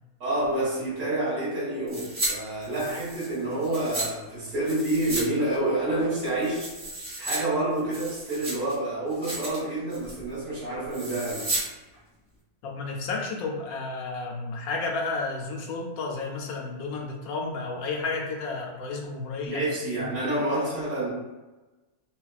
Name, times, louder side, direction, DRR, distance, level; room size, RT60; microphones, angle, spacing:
voice 1, 0.2-6.7 7.2-11.5 19.5-21.1, right 1 dB, 60° right, -8 dB, 1.8 m, -28 dB
sound 1, 1.9-2.3 2.6-4.1 4.6-5.3 5.5-5.6 6.1-7.4 7.8-8.7 9.1-9.6 9.9-10.2 10.9-11.6 11.9-12.0, right 2 dB, 35° right, 1.2 m, -33 dB
voice 2, 12.6-20.4, left 3 dB, 80° left, 0 dB, 1.1 m, -32 dB
4.0 x 2.2 x 2.3 m, 1.1 s
omnidirectional pair, 1.6 m